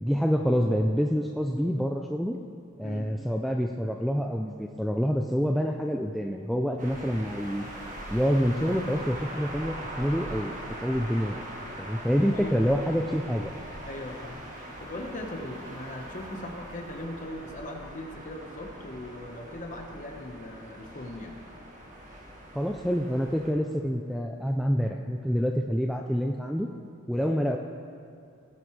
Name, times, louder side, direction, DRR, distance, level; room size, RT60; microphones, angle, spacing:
voice 1, 0.0-2.4 2.8-7.7 8.1-10.6 10.8-11.4 11.8-13.5 22.5-26.7 27.1-27.6, equal, ahead, 1 dB, 0.3 m, -27 dB
sound 1, 6.8-23.5, right 1 dB, 35° right, 1.5 m, -41 dB
voice 2, 13.9-21.3, left 1 dB, 35° left, 2 dB, 1.1 m, -39 dB
18.5 x 9.2 x 3.2 m, 2.6 s
head